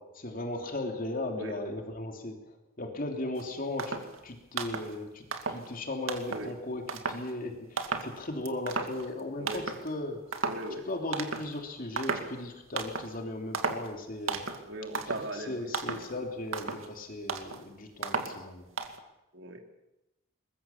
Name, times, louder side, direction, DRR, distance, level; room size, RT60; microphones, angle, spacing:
voice 1, 0.0-10.3 10.8-14.5 15.3-18.6, left 1 dB, 45° left, 3 dB, 3.0 m, -37 dB
sound 1, 3.4-3.5 3.8-4.2 4.5-4.9 5.3-5.7 6.1-6.5 6.9-7.3 7.8-8.2 8.5-9.2 9.5-9.9 10.3-10.7 11.1-11.6 12.0-12.4 12.8-13.2 13.5-13.9 14.3-14.7 14.9-15.3 15.7-16.1 16.5-16.9 17.3-17.6 18.0-18.4 18.8-19.0, right 4 dB, 85° right, 2.3 m, -34 dB
voice 2, 10.5-10.9 14.7-16.1 19.3-19.6, right 1 dB, 65° right, 3 dB, 3.1 m, -39 dB
22.5 x 21.0 x 7.2 m, 0.94 s
head